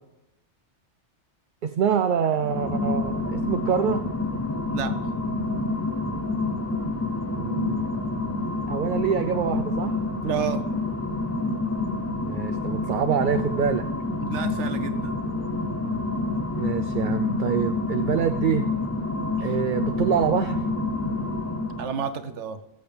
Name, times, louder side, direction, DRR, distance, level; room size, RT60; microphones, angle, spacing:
voice 1, 1.6-4.1 7.3-7.9 8.7-10.0 12.3-13.9 16.6-18.7 19.4-20.6, right 7 dB, 55° right, 8 dB, 0.6 m, -25 dB
sound 1, 2.3-22.1, left 2 dB, 20° left, 0.5 m, -28 dB
voice 2, 4.7-5.0 10.2-10.7 14.2-15.2 19.4-19.5 21.8-22.6, right 7 dB, 75° right, 10 dB, 1.2 m, -31 dB
19.0 x 7.8 x 3.4 m, 0.94 s
omnidirectional pair, 1.2 m